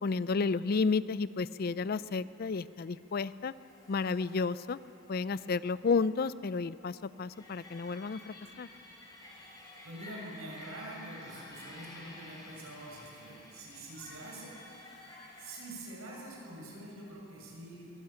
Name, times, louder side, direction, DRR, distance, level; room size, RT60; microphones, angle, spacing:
voice 1, 0.0-3.5 3.9-4.8 5.1-8.7, left 4 dB, 45° left, 17 dB, 0.4 m, -32 dB
sound 1, 1.6-15.7, left 2 dB, 20° left, 3.8 m, -53 dB
voice 2, 9.8-17.9, right 1 dB, 85° right, -2 dB, 6.6 m, -46 dB
22.5 x 14.5 x 9.0 m, 2.7 s
head